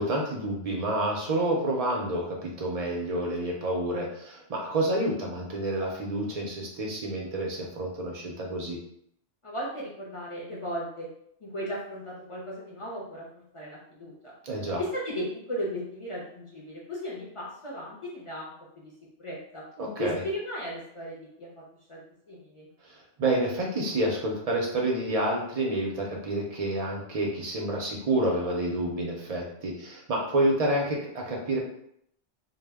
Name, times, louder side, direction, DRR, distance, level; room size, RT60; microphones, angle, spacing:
voice 1, 0.0-8.8 14.4-14.8 19.8-20.2 22.8-31.6, right 1 dB, 60° right, -1 dB, 0.4 m, -29 dB
voice 2, 9.4-11.1 11.4-14.3 14.8-18.5 18.8-18.9 19.2-19.6 20.0-21.6 21.9-22.0 22.3-22.7, equal, 45° left, -5 dB, 0.4 m, -36 dB
2.1 x 2.0 x 3.4 m, 0.70 s
omnidirectional pair, 1.2 m